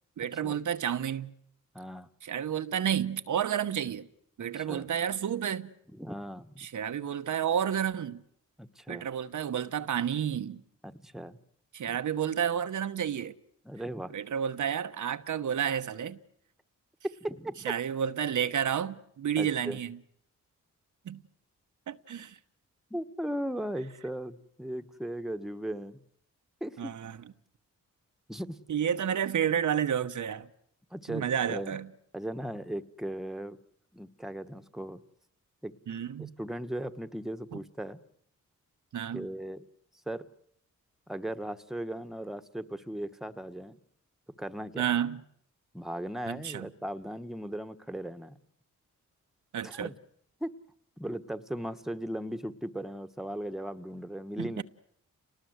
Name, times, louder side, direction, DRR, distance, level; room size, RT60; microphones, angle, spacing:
voice 1, 0.2-1.3 2.2-4.1 4.4-5.7 6.6-8.2 8.9-10.6 11.7-13.3 14.1-16.2 17.6-20.0 21.0-21.2 21.9-22.4 26.8-27.2 28.7-30.5 31.1-31.9 35.9-36.3 37.5-37.6 38.9-39.3 44.8-45.2 46.3-46.7 49.5-49.9 54.4-54.6, right 9 dB, 70° right, 1.0 m, -31 dB
voice 2, 1.7-2.1 4.6-4.9 6.0-6.7 8.6-9.0 10.8-11.4 13.6-14.1 17.2-17.6 19.4-19.8 22.9-26.0 26.6-26.9 28.3-28.6 30.9-31.8 32.1-33.6 33.9-35.0 35.6-35.7 36.4-38.0 39.1-39.6 40.1-40.3 41.1-43.7 44.4-44.9 45.7-48.4 49.6-49.9 50.4-50.5 51.0-54.6, right 1 dB, ahead, 1.4 m, -37 dB
28.5 x 19.5 x 8.0 m
cardioid pair, 70°, 31 cm